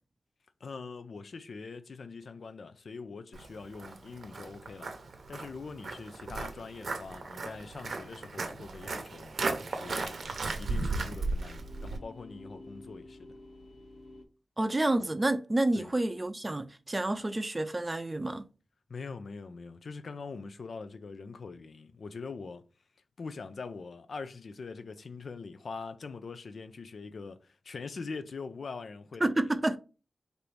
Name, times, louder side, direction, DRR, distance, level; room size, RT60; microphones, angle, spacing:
voice 1, 0.6-4.9 5.3-9.4 9.7-10.2 10.6-13.3 15.8-15.9 18.9-22.6 23.2-29.5, left 4 dB, 75° left, 0.4 m, -43 dB
Walk footsteps, 3.3-12.0, right 3 dB, 80° right, 0.7 m, -36 dB
sound 1, 9.2-14.2, left 2 dB, 55° left, 0.8 m, -52 dB
voice 2, 14.6-18.5 29.2-29.8, right 2 dB, 25° right, 0.4 m, -29 dB
4.4 x 2.6 x 3.3 m
wide cardioid pair, 80°, 0 cm